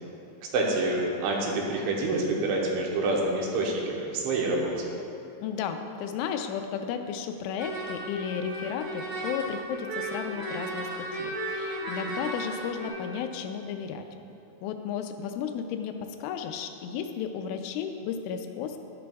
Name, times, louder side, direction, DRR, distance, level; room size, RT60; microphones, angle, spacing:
voice 1, 0.5-4.7, right 2 dB, 75° right, -2 dB, 3.3 m, -27 dB
voice 2, 5.4-14.0 14.6-18.8, left 7 dB, 85° left, 6 dB, 3.0 m, -34 dB
sound 1, 7.6-12.9, right 1 dB, 55° right, 1.2 m, -35 dB
12.5 x 11.0 x 2.3 m, 2.8 s
omnidirectional pair, 5.6 m